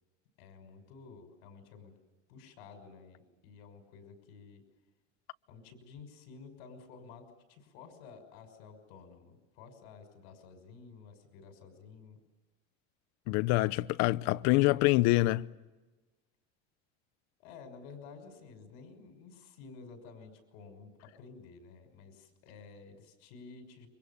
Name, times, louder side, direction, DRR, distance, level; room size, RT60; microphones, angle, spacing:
voice 1, 0.4-1.9 2.3-4.6 5.5-12.2 17.4-23.9, left 5 dB, 80° left, 6.0 m, -52 dB
voice 2, 13.3-15.5, left 19 dB, 60° left, 0.9 m, -26 dB
29.0 x 25.0 x 7.3 m
cardioid pair, 145°, 30 cm